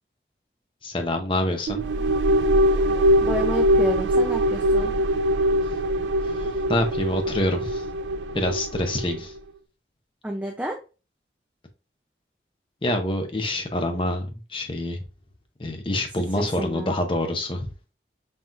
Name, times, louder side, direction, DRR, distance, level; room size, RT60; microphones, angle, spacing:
voice 1, 0.8-1.8 6.2-7.9 8.3-9.3 12.8-15.0 15.6-17.7, left 1 dB, 30° left, 5 dB, 0.7 m, -26 dB
sound 1, 1.7-9.2, equal, 90° right, 0.4 m, -22 dB
voice 2, 3.2-4.9 10.2-10.8 16.3-17.0, equal, 10° right, 0 dB, 0.5 m, -30 dB
5.5 x 3.0 x 2.4 m, 0.32 s
head